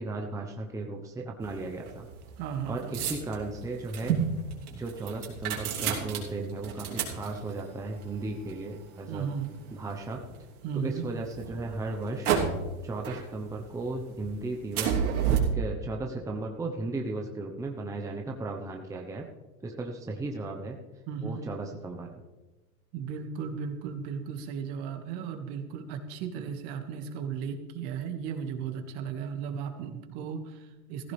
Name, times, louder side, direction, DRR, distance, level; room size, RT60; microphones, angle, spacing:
voice 1, 0.0-2.1 2.7-4.2 4.7-9.3 9.7-10.2 10.8-12.3 12.8-15.0 15.5-19.3 19.6-20.8 21.2-22.2, right 2 dB, 10° right, 1 dB, 0.9 m, -35 dB
sound 1, 1.4-10.6 11.1-12.8 13.0-13.8 14.1-15.4, right 8 dB, 90° right, 3.2 m, -32 dB
voice 2, 2.4-3.1 9.1-9.6 10.6-11.1 21.1-21.5 22.9-31.1, right 6 dB, 50° right, 5 dB, 1.9 m, -35 dB
15.0 x 14.5 x 3.4 m, 1.1 s
supercardioid pair, 135°, 42 cm